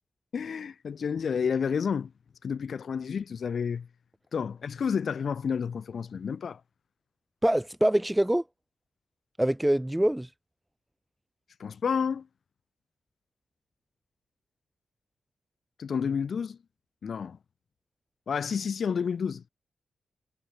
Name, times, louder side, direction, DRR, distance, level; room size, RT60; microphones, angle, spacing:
voice 1, 0.3-2.1 2.4-3.9 4.3-6.6 11.6-12.3 15.8-16.6 17.0-17.4 18.3-19.4, left 6 dB, 60° left, 1.8 m, -30 dB
voice 2, 7.4-8.4 9.4-10.3, right 1 dB, 10° right, 1.3 m, -24 dB
cardioid pair, 80°, 0 cm